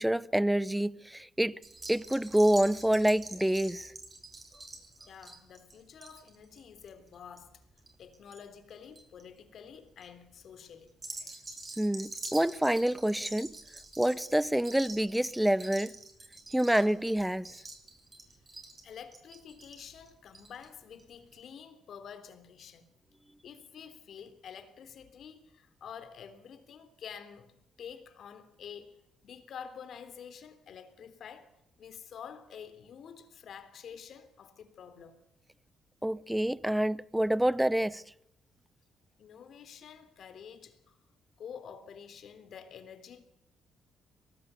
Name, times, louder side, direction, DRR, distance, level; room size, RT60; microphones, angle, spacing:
voice 1, 0.0-1.6 1.9-3.9 11.8-13.5 14.0-15.9 16.5-17.5 36.0-38.0, right 1 dB, 5° right, 0.8 m, -27 dB
sound 1, 1.6-8.4 8.7-9.2 9.7-10.0 10.9-20.7 21.0-21.1 21.3-21.4, right 2 dB, 25° right, 7.1 m, -46 dB
voice 2, 5.1-7.6 8.0-11.0 18.8-22.9 23.4-31.5 31.8-35.2 39.2-41.0 41.4-43.2, left 7 dB, 65° left, 3.4 m, -48 dB
23.0 x 19.0 x 8.3 m
cardioid pair, 90°, 0 cm